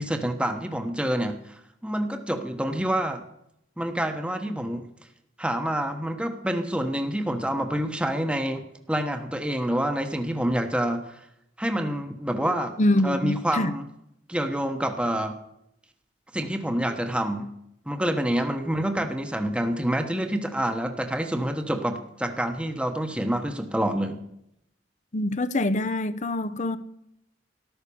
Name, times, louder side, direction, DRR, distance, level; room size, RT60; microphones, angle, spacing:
voice 1, 0.0-3.2 3.8-4.8 5.4-11.2 11.6-12.7 13.0-13.9 14.3-15.4 16.3-17.5 17.9-24.2, right 1 dB, 5° right, 1.1 m, -27 dB
voice 2, 12.8-13.7 25.1-26.8, left 1 dB, 40° left, 0.8 m, -24 dB
13.5 x 12.0 x 7.0 m
head